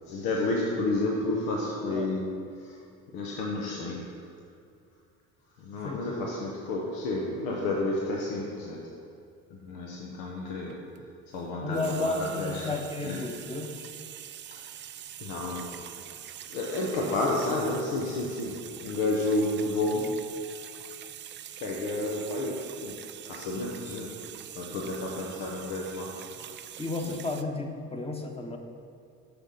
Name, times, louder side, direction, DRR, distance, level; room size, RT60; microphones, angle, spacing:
voice 1, 0.0-2.8 3.1-4.3 5.6-8.9 9.5-13.5 14.5-14.7 15.2-15.9 16.5-20.4 21.6-26.7 27.0-27.2, left 2 dB, 80° left, -1 dB, 1.0 m, -31 dB
voice 2, 5.8-6.2 11.6-13.8 26.8-28.6, left 2 dB, 15° left, 3 dB, 1.1 m, -33 dB
sound 1, 10.5-11.3 11.5-27.4, right 10 dB, 35° right, 0.4 m, -44 dB
6.9 x 6.0 x 5.6 m, 2.4 s
supercardioid pair, 75°, 35 cm